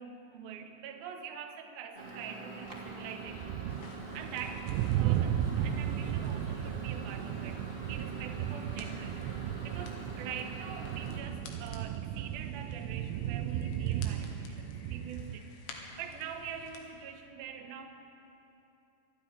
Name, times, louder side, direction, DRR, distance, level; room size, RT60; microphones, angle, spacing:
voice 1, 0.0-4.7 5.0-7.6 7.9-15.5 16.0-17.9, right 7 dB, 70° right, 3 dB, 2.7 m, -44 dB
Microwave oven, 1.9-11.2, right 3 dB, 15° right, 2.1 m, -44 dB
sound 1, 2.7-15.4, right 11 dB, 85° right, 2.9 m, -35 dB
sound 2, 3.7-16.9, left 4 dB, 85° left, 4.0 m, -52 dB
26.0 x 10.0 x 9.9 m, 2.9 s
omnidirectional pair, 5.1 m